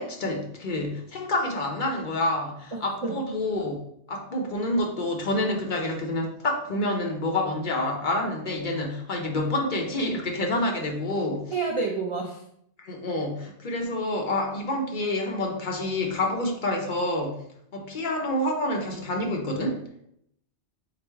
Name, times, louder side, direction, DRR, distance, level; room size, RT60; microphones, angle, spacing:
voice 1, 0.0-3.8 4.1-11.5 12.8-17.4 17.7-19.9, left 1 dB, 50° left, 1 dB, 0.7 m, -28 dB
voice 2, 2.7-3.2 11.5-12.4, right 4 dB, 55° right, 0 dB, 0.3 m, -29 dB
4.9 x 2.0 x 4.4 m, 0.72 s
omnidirectional pair, 1.1 m